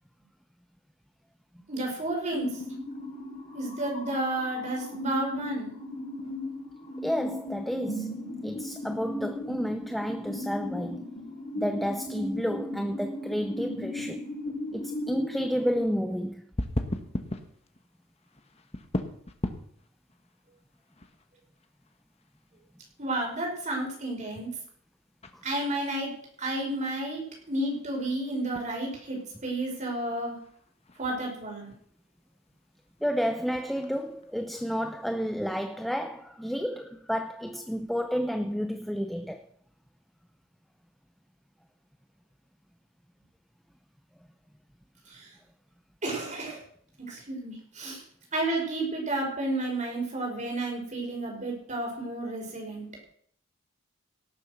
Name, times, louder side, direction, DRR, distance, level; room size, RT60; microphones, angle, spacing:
voice 1, 1.7-2.6 3.5-5.7 23.0-24.5 25.4-26.1 26.4-30.4 31.0-31.7 45.1-45.3 46.0-46.6 47.1-48.0 48.3-52.9, right 2 dB, 35° right, 5.6 m, -31 dB
sound 1, 2.3-15.8, left 1 dB, 65° left, 6.3 m, -37 dB
voice 2, 7.0-11.1 11.5-14.2 14.7-16.5 25.3-25.4 33.0-39.4, equal, ahead, 0.6 m, -31 dB
sound 2, 16.6-35.1, left 1 dB, 30° left, 1.2 m, -41 dB
18.0 x 7.6 x 6.5 m
head